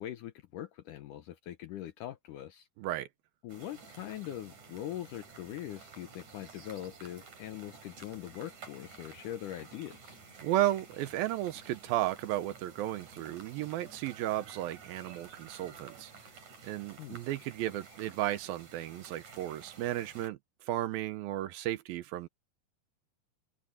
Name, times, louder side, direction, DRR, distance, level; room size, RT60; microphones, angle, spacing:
voice 1, 0.0-2.7 3.4-10.2 17.0-17.2, left 12 dB, 75° left, 2.0 m, -42 dB
voice 2, 2.8-3.1 10.4-16.1 16.6-20.4 20.7-22.3, right 14 dB, 75° right, 2.4 m, -34 dB
sound 1, 3.5-20.3, right 4 dB, 50° right, 5.9 m, -52 dB
open air
omnidirectional pair, 4.5 m